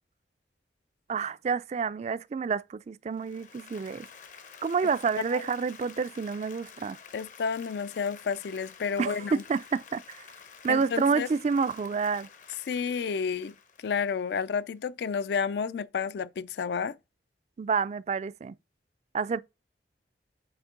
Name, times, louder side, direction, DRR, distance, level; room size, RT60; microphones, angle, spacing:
voice 1, 1.1-4.1 4.6-7.0 9.0-10.3 10.6-12.3 17.6-18.5 19.1-19.4, right 5 dB, 40° right, 0.3 m, -29 dB
Applause, 3.1-14.8, left 6 dB, 45° left, 0.7 m, -50 dB
voice 2, 7.1-9.4 10.7-11.3 12.7-13.5 13.8-17.0, left 6 dB, 65° left, 0.4 m, -31 dB
7.8 x 4.4 x 3.7 m
head